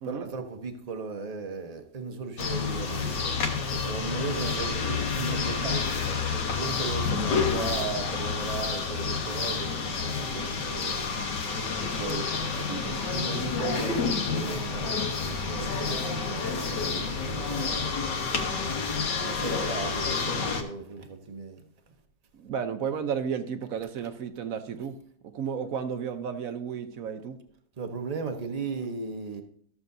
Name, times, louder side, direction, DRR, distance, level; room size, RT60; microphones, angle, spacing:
voice 1, 0.0-3.3 3.7-11.0 12.8-12.9 13.1-18.7 19.2-21.6 27.8-29.4, right 4 dB, 35° right, 0.7 m, -37 dB
sound 1, 2.4-20.6, left 5 dB, 75° left, 1.7 m, -29 dB
voice 2, 11.8-12.3 12.6-13.0 22.3-27.4, right 7 dB, 60° right, 1.0 m, -33 dB
14.0 x 7.1 x 2.6 m
omnidirectional pair, 1.9 m